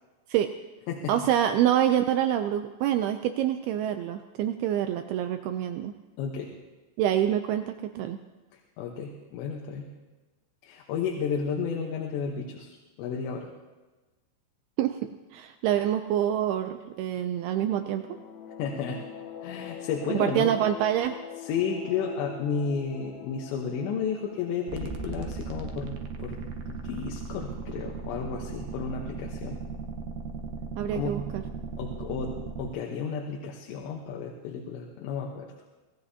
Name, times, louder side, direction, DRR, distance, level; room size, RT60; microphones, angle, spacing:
voice 1, 1.1-5.9 7.0-8.2 14.8-18.1 20.1-21.2 30.8-31.4, right 11 dB, 90° right, 7 dB, 2.2 m, -26 dB
voice 2, 6.2-6.5 8.8-9.9 10.6-13.5 18.6-19.0 19.4-20.5 21.4-29.6 30.9-31.2 31.8-35.5, left 6 dB, 80° left, 0 dB, 3.3 m, -32 dB
sound 1, 17.7-26.3, left 8 dB, 65° left, 3.0 m, -44 dB
sound 2, 24.7-32.7, right 5 dB, 70° right, 2.2 m, -37 dB
25.5 x 17.5 x 2.8 m, 1.2 s
omnidirectional pair, 5.1 m